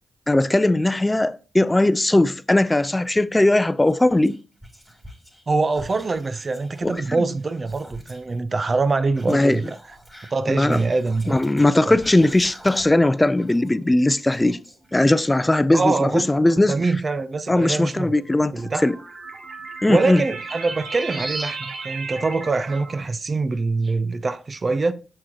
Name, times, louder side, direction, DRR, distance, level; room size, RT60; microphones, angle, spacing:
voice 1, 0.3-4.4 6.8-7.3 9.3-9.6 10.5-10.8 11.3-14.6 14.9-16.8 17.5-19.0 19.8-20.2, left 1 dB, 20° left, 0.5 m, -19 dB
Whispering, 3.8-5.4 5.7-8.4 9.1-13.1 13.4-15.2, equal, 5° right, 2.7 m, -45 dB
voice 2, 5.5-9.8 10.3-11.4 11.9-12.0 15.7-16.2 16.7-18.1 18.5-18.9 19.9-24.9, right 3 dB, 45° right, 0.5 m, -24 dB
sound 1, 12.9-13.6 14.4-14.5 15.7-15.8 17.9-23.0, right 3 dB, 60° right, 1.9 m, -35 dB
6.5 x 6.0 x 2.9 m
supercardioid pair, 50°, 0 cm